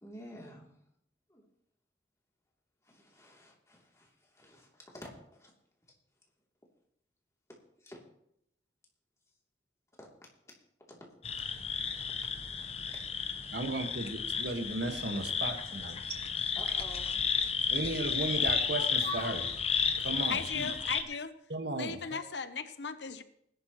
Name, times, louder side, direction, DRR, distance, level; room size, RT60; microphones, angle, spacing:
voice 1, 0.0-0.8 1.3-1.5 2.8-5.5 7.8-8.0 10.0-10.1 10.9-11.0 12.5-12.6 13.2-13.4 16.5-17.1, left 1 dB, 15° left, -2 dB, 3.0 m, -51 dB
sound 1, 11.2-21.0, left 6 dB, 35° left, 1.0 m, -33 dB
voice 2, 13.5-16.0 17.7-19.5 20.0-20.7 21.5-22.2, right 2 dB, 70° right, 5 dB, 1.6 m, -35 dB
voice 3, 20.3-21.3 21.7-23.2, left 5 dB, 80° left, 11 dB, 0.8 m, -37 dB
19.5 x 11.0 x 3.1 m, 0.72 s
head